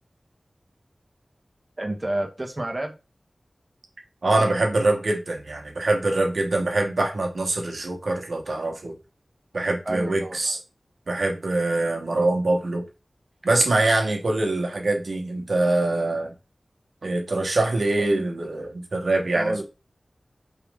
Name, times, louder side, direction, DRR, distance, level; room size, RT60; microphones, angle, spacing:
voice 1, 1.8-2.9 9.9-10.6 12.1-12.3 18.0-18.3 19.3-19.6, right 1 dB, 30° right, 0.8 m, -30 dB
voice 2, 4.2-8.9 9.5-10.6 11.1-12.8 13.4-16.3 17.0-19.6, right 2 dB, 75° right, 1.0 m, -24 dB
4.5 x 3.1 x 3.4 m
wide cardioid pair, 75°, 0 cm